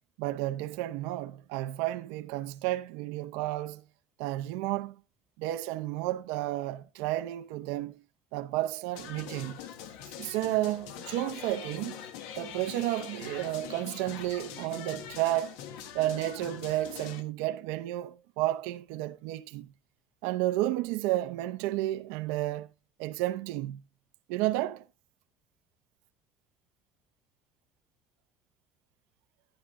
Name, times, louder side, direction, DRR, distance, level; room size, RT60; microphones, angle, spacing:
voice 1, 0.2-3.8 4.2-5.0 5.4-8.0 8.3-9.6 10.2-12.0 12.3-15.6 15.9-19.7 20.2-22.7 23.0-23.8 24.3-24.8, right 15 dB, 85° right, 0.8 m, -32 dB
sound 1, 8.9-17.2, left 9 dB, 85° left, 1.3 m, -43 dB
11.5 x 11.5 x 2.6 m
cardioid pair, 165°, 3 cm